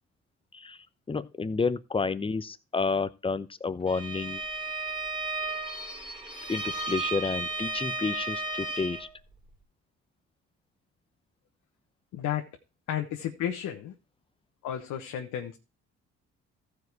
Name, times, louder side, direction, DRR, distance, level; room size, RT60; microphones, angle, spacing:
voice 1, 0.5-4.4 6.5-9.1, left 4 dB, 20° left, 0.8 m, -30 dB
Bowed string instrument, 3.9-9.1, right 2 dB, 15° right, 3.2 m, -34 dB
voice 2, 12.1-12.5 12.9-13.9 14.6-15.6, left 10 dB, 85° left, 1.2 m, -32 dB
14.5 x 5.1 x 4.6 m
cardioid pair, 90°, 30 cm